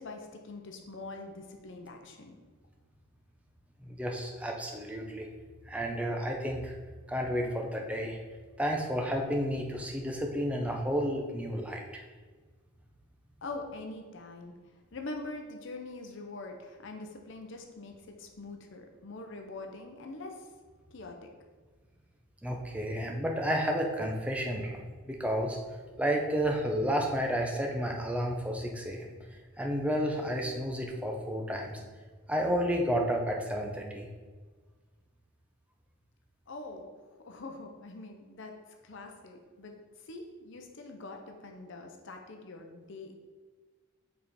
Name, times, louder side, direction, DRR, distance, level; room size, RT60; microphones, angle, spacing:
voice 1, 0.0-2.3 13.4-14.5 14.9-20.5 20.9-21.3 36.5-38.5 38.8-39.7 40.0-43.1, left 2 dB, 55° left, 3 dB, 0.7 m, -44 dB
voice 2, 3.8-5.3 5.7-6.7 7.1-8.2 8.6-11.8 22.4-24.8 25.1-25.6 26.0-29.1 29.6-31.8 32.3-34.1, equal, 5° right, 1 dB, 0.6 m, -31 dB
5.4 x 4.5 x 4.2 m, 1.4 s
head